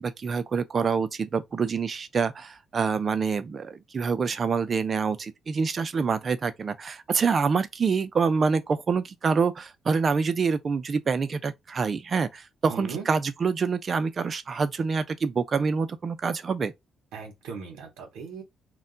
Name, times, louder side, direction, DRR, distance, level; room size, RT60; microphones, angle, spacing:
voice 1, 0.0-16.7, right 5 dB, 40° right, 0.4 m, -26 dB
voice 2, 12.7-13.1 17.1-18.4, right 6 dB, 90° right, 0.8 m, -38 dB
2.3 x 2.2 x 3.7 m
cardioid pair, 90°, 0 cm